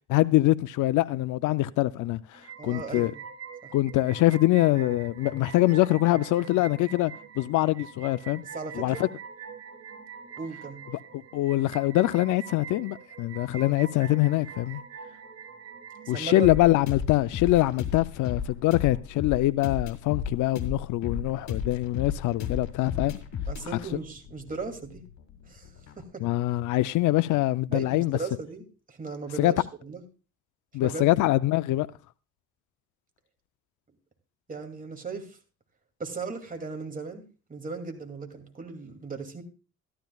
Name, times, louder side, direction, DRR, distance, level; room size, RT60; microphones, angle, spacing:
voice 1, 0.1-3.1 3.7-8.4 8.8-9.1 11.1-14.8 16.1-23.2 26.2-28.2 29.4-29.5 30.7-31.9, left 17 dB, 85° left, 0.5 m, -24 dB
sound 1, 2.3-16.7, right 7 dB, 50° right, 1.9 m, -44 dB
voice 2, 2.6-3.1 8.5-9.1 10.4-10.8 16.1-16.5 23.5-25.0 25.5-25.7 26.0-26.2 27.7-30.0 30.8-31.0 34.5-35.4 36.0-37.2 37.5-39.4, right 4 dB, 30° right, 2.4 m, -37 dB
sound 2, 16.4-26.0, left 7 dB, 65° left, 2.1 m, -35 dB
13.5 x 12.5 x 2.3 m
cardioid pair, 90°, 30 cm